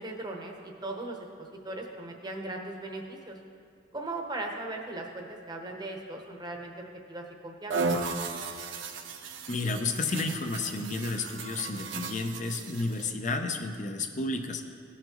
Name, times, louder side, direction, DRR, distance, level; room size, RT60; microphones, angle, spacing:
voice 1, 0.0-3.4 3.9-6.7 7.1-7.9, right 2 dB, 20° right, 2 dB, 0.9 m, -38 dB
sound 1, 7.7-13.1, right 3 dB, 80° right, 0.7 m, -35 dB
voice 2, 9.5-14.6, left 3 dB, 40° left, 5 dB, 0.6 m, -31 dB
16.0 x 5.8 x 3.0 m, 2.4 s
head